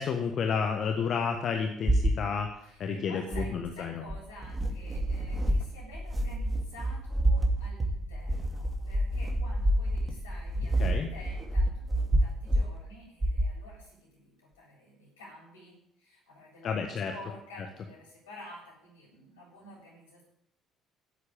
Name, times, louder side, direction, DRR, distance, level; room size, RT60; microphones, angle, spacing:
voice 1, 0.0-2.5 2.8-4.0 10.8-11.1 16.6-17.1, left 6 dB, 50° left, 5 dB, 1.5 m, -30 dB
sound 1, 1.9-2.2 3.3-3.7 4.1-12.7 13.2-13.6, right 1 dB, 25° right, 2.8 m, -28 dB
voice 2, 2.6-11.9 12.2-20.2, left 1 dB, 80° left, -4 dB, 8.0 m, -50 dB
13.0 x 8.2 x 9.2 m, 0.73 s
figure-of-eight pair, 50°, 0 cm